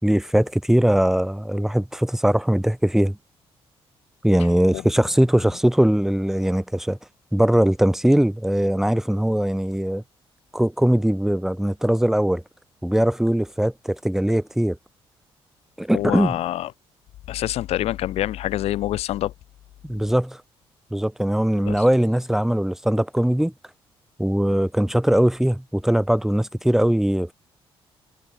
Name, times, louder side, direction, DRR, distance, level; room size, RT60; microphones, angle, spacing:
voice 1, 0.0-3.2 4.2-7.0 7.3-10.0 10.5-12.4 12.8-14.8 15.8-16.4 19.8-20.4 20.9-23.5 24.2-27.3, right 1 dB, 5° right, 3.7 m, -20 dB
voice 2, 15.9-16.7 17.3-19.3 21.7-21.8, left 14 dB, 85° left, 5.3 m, -26 dB
cardioid pair, 100°, 10 cm